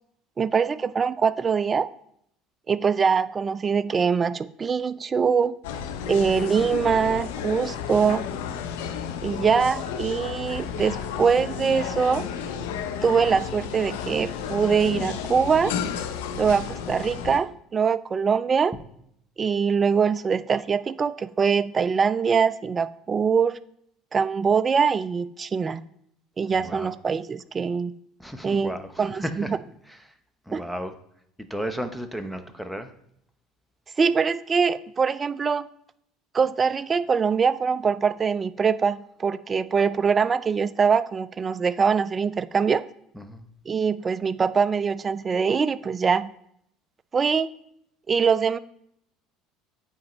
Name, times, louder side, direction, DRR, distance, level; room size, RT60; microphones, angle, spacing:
voice 1, 0.4-1.9 2.7-5.6 6.1-8.2 9.2-12.3 13.0-15.7 16.4-18.7 19.4-23.6 24.1-25.8 26.4-27.9 28.4-28.7 29.0-29.2 29.5-29.6 30.5-30.6 34.0-35.7 36.3-42.8 43.7-46.3 47.1-47.5 48.1-48.6, right 6 dB, 30° right, 16 dB, 0.3 m, -23 dB
sound 1, 5.6-17.4, left 7 dB, 80° left, 0.6 m, -32 dB
voice 2, 26.5-26.9 28.2-29.5 29.9-30.1 30.5-30.9 31.5-32.9 43.1-43.5, equal, ahead, 9 dB, 0.8 m, -34 dB
8.8 x 4.2 x 3.1 m, 0.71 s
supercardioid pair, 85°, 0 cm